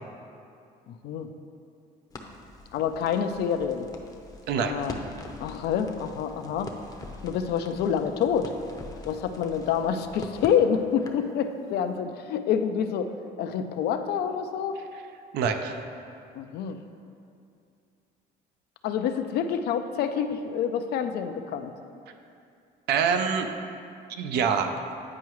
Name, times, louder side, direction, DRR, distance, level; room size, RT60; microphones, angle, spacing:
voice 1, 0.9-1.3 2.7-3.9 4.6-5.0 5.4-6.7 7.2-8.5 9.0-13.1 13.4-14.8 16.3-16.8 18.8-21.7, left 8 dB, 70° left, 8 dB, 0.5 m, -27 dB
Crackle, 2.1-11.3, left 2 dB, 20° left, 0.6 m, -43 dB
voice 2, 4.5-4.8 15.3-15.8 22.9-23.5 24.1-24.8, right 6 dB, 75° right, 6 dB, 0.6 m, -25 dB
9.5 x 4.7 x 3.1 m, 2.5 s
cardioid pair, 110°, 17 cm